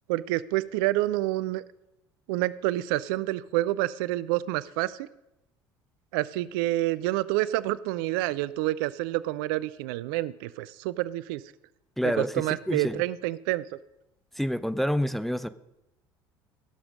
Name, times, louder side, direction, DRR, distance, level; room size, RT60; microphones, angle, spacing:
voice 1, 0.1-1.6 2.3-5.1 6.1-11.4 12.0-13.6, right 16 dB, 60° right, 18 dB, 0.4 m, -28 dB
voice 2, 12.0-13.0 14.4-15.5, equal, ahead, 14 dB, 0.5 m, -28 dB
16.0 x 6.8 x 5.1 m, 0.88 s
figure-of-eight pair, 65°, 13 cm